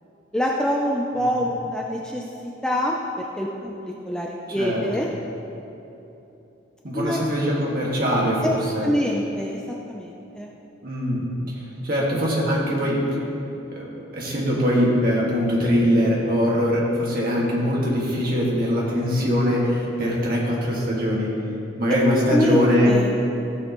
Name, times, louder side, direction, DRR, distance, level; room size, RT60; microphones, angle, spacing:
voice 1, 0.3-5.1 6.9-7.4 8.4-8.5 8.8-9.6 9.9-10.5 22.3-23.1, equal, 5° left, -1 dB, 0.5 m, -25 dB
voice 2, 4.6-5.1 6.8-8.9 10.8-13.0 13.7-21.3 21.8-22.9, equal, 45° right, -4 dB, 1.9 m, -22 dB
15.0 x 6.4 x 3.0 m, 3.0 s
head